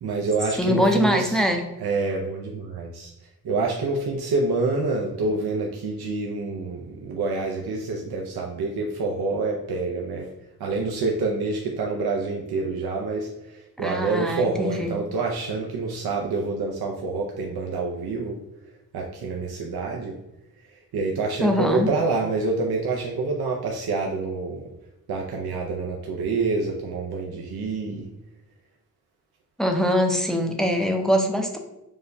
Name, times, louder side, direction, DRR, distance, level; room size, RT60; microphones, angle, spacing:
voice 1, 0.0-1.4 1.8-3.1 3.4-10.3 10.6-18.4 18.9-20.2 20.7-24.7 25.1-28.1, right 3 dB, 75° right, -1 dB, 0.5 m, -27 dB
voice 2, 0.6-1.6 13.8-14.9 21.4-21.9 29.6-31.6, equal, ahead, 4 dB, 0.4 m, -23 dB
4.8 x 2.1 x 2.6 m, 0.96 s
wide cardioid pair, 95°, 38 cm